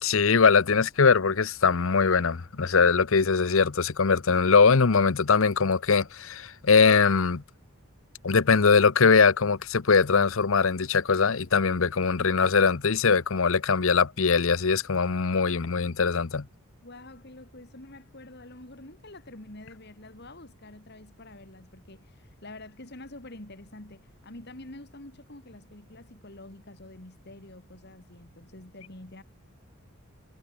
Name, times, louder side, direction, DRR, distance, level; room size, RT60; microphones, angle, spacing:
voice 1, 0.0-7.4 8.2-16.5, left 5 dB, 65° left, 0.8 m, -22 dB
voice 2, 16.8-29.2, left 2 dB, 50° left, 2.5 m, -47 dB
head